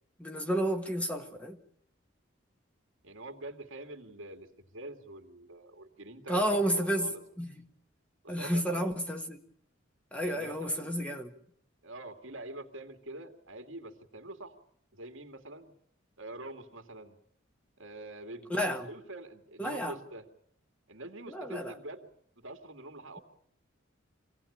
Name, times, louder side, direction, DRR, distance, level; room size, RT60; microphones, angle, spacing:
voice 1, 0.2-1.6 6.3-7.6 8.3-9.4 10.1-11.3 18.5-18.9 19.6-20.0 21.3-21.7, equal, 5° left, 1.6 m, -31 dB
voice 2, 3.0-7.2 8.2-9.0 10.2-11.0 11.8-14.6 14.9-15.7 16.2-17.2 17.8-20.3 20.9-22.1 22.4-23.2, right 2 dB, 90° right, 2.6 m, -45 dB
26.0 x 17.5 x 8.8 m
head